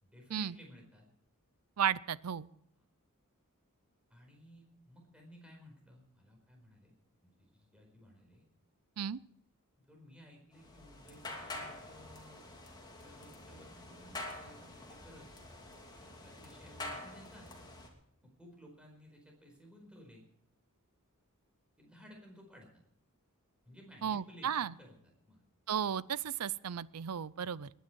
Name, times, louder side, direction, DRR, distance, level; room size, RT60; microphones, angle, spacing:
voice 1, 0.0-1.0 2.8-2.9 4.1-6.9 7.2-8.5 9.8-12.4 13.0-15.3 16.1-17.5 18.2-20.3 21.8-22.8 23.6-25.4 25.9-26.0, equal, 5° right, 1 dB, 4.6 m, -57 dB
voice 2, 1.8-2.5 9.0-9.2 24.0-24.7 25.7-27.7, right 8 dB, 90° right, 19 dB, 0.5 m, -34 dB
sound 1, 10.5-17.9, left 2 dB, 20° left, 2.7 m, -47 dB
21.0 x 10.5 x 4.6 m, 0.76 s
head